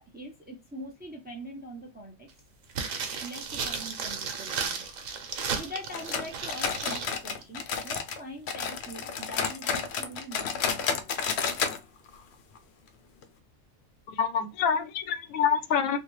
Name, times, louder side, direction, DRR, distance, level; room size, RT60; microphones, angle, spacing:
voice 1, 0.1-2.3 3.2-4.8 5.5-10.8, equal, 10° right, 0.4 m, -43 dB
sound 1, 2.7-7.1 7.4-7.5, right 5 dB, 85° right, 1.1 m, -34 dB
sound 2, 5.9-8.2 8.5-11.8 12.1-12.2 12.6-12.7 13.2-13.3, left 6 dB, 65° left, 0.7 m, -31 dB
voice 2, 14.1-16.0, left 7 dB, 85° left, 1.0 m, -26 dB
3.2 x 2.3 x 3.0 m
omnidirectional pair, 1.4 m